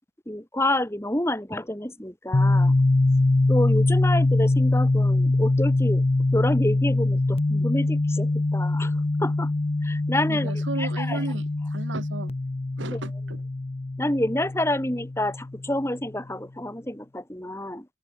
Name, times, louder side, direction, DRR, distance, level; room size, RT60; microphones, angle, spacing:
voice 1, 0.3-2.7 3.5-6.0 6.3-8.9 9.2-9.5 9.8-11.2 12.9-13.0 14.0-17.9, left 1 dB, 15° left, 2.0 m, -28 dB
sound 1, 2.3-15.9, left 2 dB, 30° left, 0.5 m, -23 dB
voice 2, 10.3-12.3 12.8-13.4, right 3 dB, 85° right, 1.2 m, -34 dB
open air
head